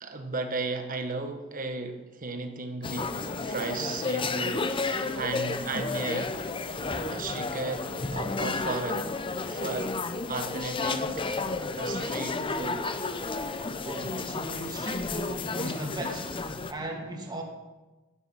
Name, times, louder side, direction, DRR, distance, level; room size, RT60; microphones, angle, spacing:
voice 1, 0.0-6.3 7.1-9.9 10.3-11.2 11.8-12.9, right 3 dB, 40° right, 6 dB, 1.3 m, -35 dB
sound 1, 2.8-16.7, left 3 dB, 25° left, 0.7 m, -32 dB
voice 2, 13.8-16.4 16.7-17.4, right 1 dB, 20° right, 0 dB, 2.0 m, -37 dB
12.5 x 9.8 x 5.6 m, 1.2 s
head